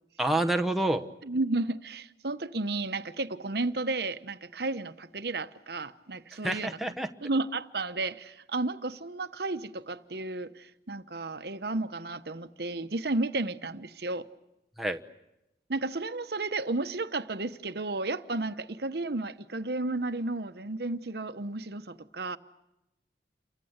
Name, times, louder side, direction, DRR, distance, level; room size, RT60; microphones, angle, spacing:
voice 1, 0.2-1.1 6.4-7.1 14.8-15.0, right 1 dB, ahead, 0.9 m, -27 dB
voice 2, 1.2-6.8 7.2-14.3 15.7-22.4, right 2 dB, 60° right, 1.0 m, -33 dB
29.0 x 24.0 x 8.0 m
head